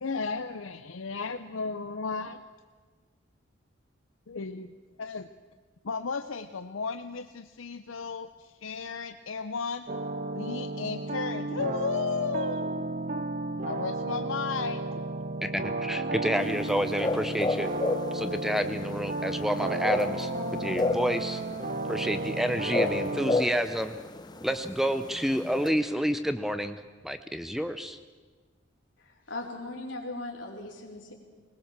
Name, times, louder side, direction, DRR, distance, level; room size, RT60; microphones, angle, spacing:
voice 1, 0.0-2.4 4.3-4.7 5.0-5.3 5.8-9.9 10.4-12.9 13.6-14.8, left 5 dB, 85° left, 9 dB, 0.7 m, -34 dB
sound 1, 9.9-23.4, right 2 dB, 40° right, 0.7 m, -33 dB
voice 2, 15.4-17.7 18.1-21.4 21.9-23.9 24.4-28.0, equal, ahead, 10 dB, 0.6 m, -29 dB
sound 2, 16.4-25.7, left 2 dB, 20° left, 0.9 m, -33 dB
voice 3, 29.0-31.1, left 2 dB, 65° left, 0 dB, 4.1 m, -39 dB
20.0 x 20.0 x 7.3 m, 1.4 s
head